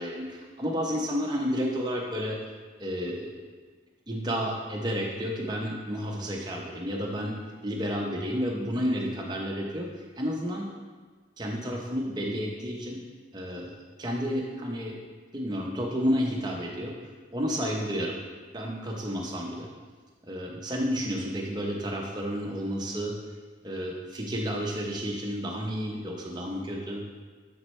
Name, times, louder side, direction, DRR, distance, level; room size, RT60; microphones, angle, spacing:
voice 1, 0.0-2.4 2.8-3.3 4.1-7.3 7.6-10.7 11.4-13.0 13.3-15.0 15.3-16.9 17.3-18.2 18.5-19.7 20.3-23.2 23.6-27.0, equal, 20° right, -1 dB, 0.8 m, -31 dB
9.3 x 4.4 x 3.2 m, 1.4 s
head